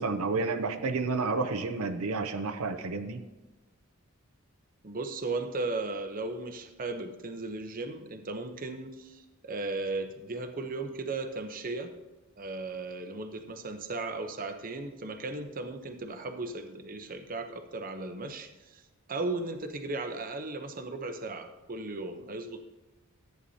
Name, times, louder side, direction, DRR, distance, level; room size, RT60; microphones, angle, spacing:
voice 1, 0.0-3.2, right 3 dB, 80° right, 6 dB, 0.7 m, -30 dB
voice 2, 4.8-11.9 12.4-22.6, right 3 dB, 40° right, 6 dB, 0.8 m, -36 dB
14.0 x 9.2 x 2.8 m, 1.1 s
head